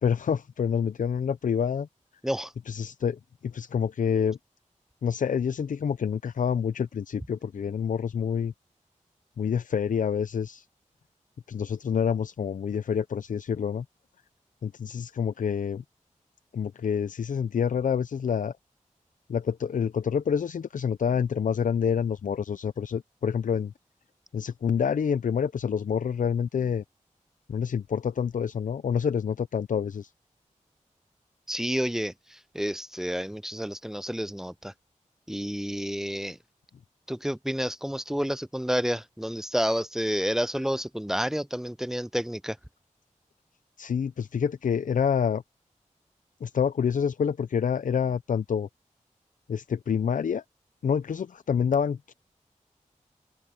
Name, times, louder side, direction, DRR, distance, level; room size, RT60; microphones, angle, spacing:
voice 1, 0.0-1.9 2.7-4.4 5.0-8.5 9.4-10.7 11.5-13.8 14.6-15.8 16.5-18.5 19.3-23.7 24.3-26.8 27.5-30.1 43.8-45.4 46.4-48.7 49.5-50.4 50.8-52.1, left 7 dB, 75° left, 0.5 m, -27 dB
voice 2, 31.5-34.7 35.3-36.4 37.1-42.6, equal, 5° right, 0.5 m, -30 dB
open air
cardioid pair, 45°, 14 cm